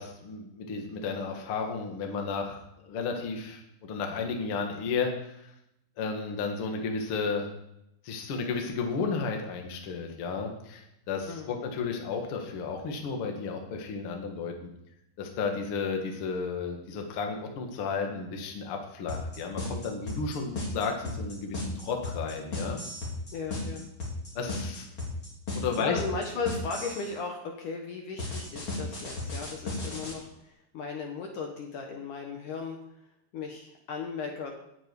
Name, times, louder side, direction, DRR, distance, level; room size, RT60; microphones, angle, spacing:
voice 1, 0.0-5.5 6.0-7.5 8.0-14.7 15.2-22.8 24.4-24.9 25.5-26.0, left 5 dB, 45° left, 2 dB, 1.9 m, -33 dB
sound 1, 19.1-27.1 28.2-30.1, left 2 dB, 30° left, 4.7 m, -35 dB
voice 2, 23.3-23.9 24.9-25.0 25.8-32.8 33.3-34.5, left 4 dB, 65° left, 2 dB, 2.4 m, -36 dB
18.0 x 7.4 x 5.3 m, 0.82 s
omnidirectional pair, 4.6 m